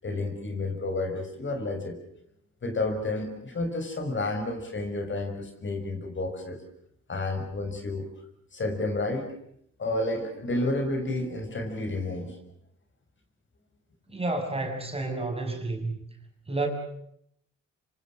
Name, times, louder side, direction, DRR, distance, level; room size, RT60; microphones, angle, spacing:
voice 1, 0.0-2.0 2.6-6.6 7.1-8.1 8.5-9.3 9.8-12.4, left 2 dB, 40° left, 5 dB, 6.9 m, -30 dB
voice 2, 14.1-16.0 16.5-16.7, right 2 dB, 20° right, 4 dB, 6.7 m, -30 dB
27.0 x 25.5 x 6.6 m, 0.70 s
cardioid pair, 90°, 30 cm